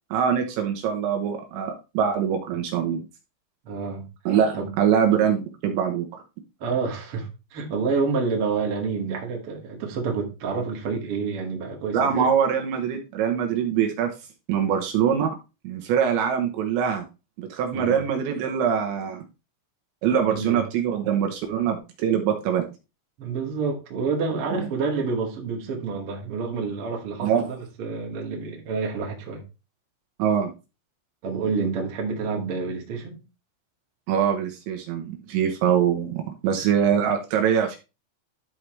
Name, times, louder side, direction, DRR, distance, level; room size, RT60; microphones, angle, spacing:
voice 1, 0.1-3.0 4.3-6.1 11.9-14.1 14.5-15.3 15.6-17.0 17.4-19.2 20.0-22.7 24.5-24.6 27.2-27.5 30.2-30.5 34.1-37.8, right 8 dB, 75° right, 4 dB, 2.9 m, -23 dB
voice 2, 3.6-4.1 4.5-4.7 6.6-12.3 17.7-18.0 20.3-20.6 23.2-29.4 31.2-33.2, right 4 dB, 55° right, -1 dB, 1.6 m, -28 dB
12.5 x 4.7 x 3.2 m, 0.28 s
omnidirectional pair, 5.9 m